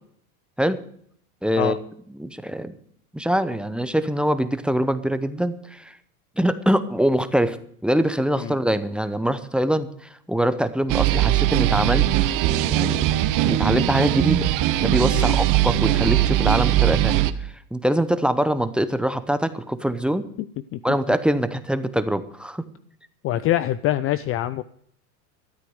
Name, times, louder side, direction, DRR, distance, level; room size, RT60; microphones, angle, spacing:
voice 1, 1.4-1.8 2.2-2.7 3.1-5.9 6.4-7.6 7.8-9.9 10.3-12.1 12.5-14.5 14.8-17.2 17.7-20.3 20.8-22.6, equal, ahead, 11 dB, 0.7 m, -23 dB
sound 1, 10.9-17.3, right 14 dB, 45° right, 1.0 m, -20 dB
voice 2, 23.2-24.6, left 13 dB, 30° left, 15 dB, 0.4 m, -24 dB
13.5 x 8.4 x 7.9 m, 0.64 s
supercardioid pair, 125°, 46 cm